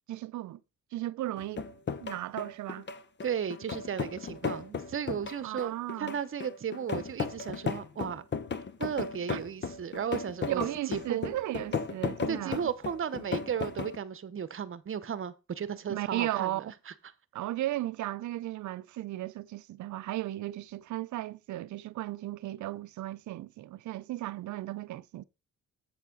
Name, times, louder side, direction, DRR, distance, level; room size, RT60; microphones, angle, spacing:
voice 1, 0.1-0.6 0.9-1.6 2.0-2.9 5.4-6.2 9.3-9.4 10.5-12.6 15.9-16.6 17.3-25.2, right 15 dB, 75° right, 0.6 m, -35 dB
sound 1, 1.4-14.0, left 5 dB, 35° left, 1.0 m, -35 dB
voice 2, 3.2-5.7 6.0-8.2 8.8-10.6 10.9-11.3 12.3-16.9, right 8 dB, 45° right, 1.0 m, -35 dB
8.0 x 7.4 x 3.9 m
cardioid pair, 90°, 30 cm